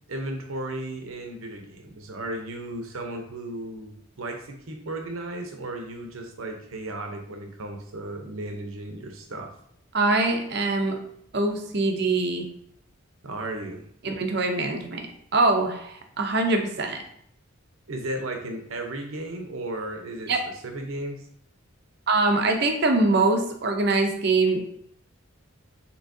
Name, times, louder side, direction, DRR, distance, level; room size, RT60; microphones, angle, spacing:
voice 1, 0.1-9.5 13.2-13.8 17.9-21.2, right 1 dB, 80° right, 4 dB, 0.8 m, -35 dB
voice 2, 9.9-11.0 11.3-12.5 14.0-15.1 15.3-17.0 20.3-20.4 22.1-24.6, right 3 dB, 50° right, 4 dB, 0.6 m, -23 dB
6.1 x 3.0 x 2.7 m, 0.70 s
head